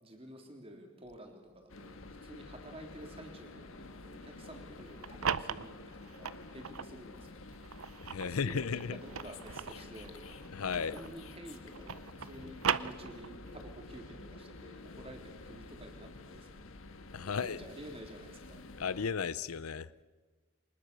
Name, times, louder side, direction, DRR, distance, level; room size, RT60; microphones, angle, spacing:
voice 1, 0.0-7.4 8.2-10.5 10.9-16.6 17.2-18.6, right 1 dB, 25° right, 3.4 m, -51 dB
sound 1, 1.7-19.1, left 3 dB, 70° left, 1.4 m, -50 dB
sound 2, 4.8-6.9 7.5-11.3 11.5-13.5, right 7 dB, 75° right, 0.7 m, -38 dB
voice 2, 8.0-9.0 10.5-11.0 17.1-17.6 18.8-19.9, left 6 dB, 85° left, 0.6 m, -34 dB
25.0 x 20.0 x 6.9 m
head